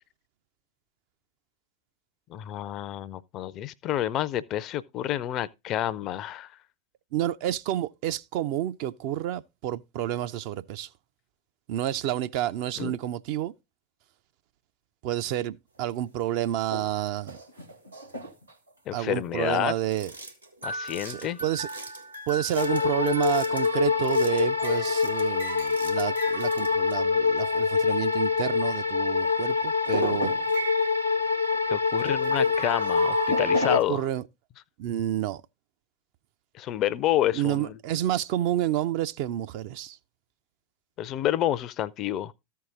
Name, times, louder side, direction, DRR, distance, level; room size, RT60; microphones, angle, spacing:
voice 1, 2.3-6.5 12.8-13.0 18.9-19.7 20.6-21.4 31.7-34.0 36.6-37.8 41.0-42.3, left 12 dB, 35° left, 0.5 m, -29 dB
voice 2, 7.1-10.9 11.7-13.5 15.0-17.4 18.9-20.1 21.1-21.7 22.3-30.3 33.7-34.2 34.8-35.4 37.3-40.0, right 12 dB, 45° right, 0.5 m, -29 dB
sound 1, 15.8-15.9 16.5-16.9 17.2-18.7 19.9-28.3 28.7-28.8 29.2-29.3 29.8-33.8, right 2 dB, 90° right, 1.6 m, -36 dB
sound 2, 22.6-33.8, left 5 dB, 85° left, 0.7 m, -25 dB
14.0 x 4.7 x 3.7 m
figure-of-eight pair, 90°, 0 cm